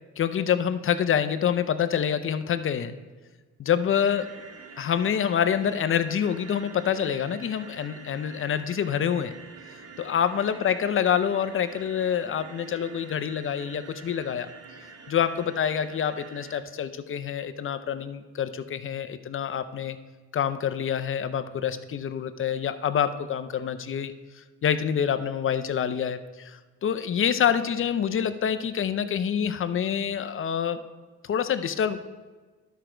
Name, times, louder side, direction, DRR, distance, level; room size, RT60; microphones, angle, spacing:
voice 1, 0.2-3.0 3.6-4.3 4.8-9.3 9.7-14.5 15.1-20.0 20.3-24.1 24.6-30.8 31.2-32.0, left 8 dB, 45° left, 11 dB, 0.6 m, -26 dB
sound 1, 3.9-16.6, right 5 dB, 50° right, 1.0 m, -46 dB
12.0 x 4.6 x 5.0 m, 1.3 s
cardioid pair, 90°, 30 cm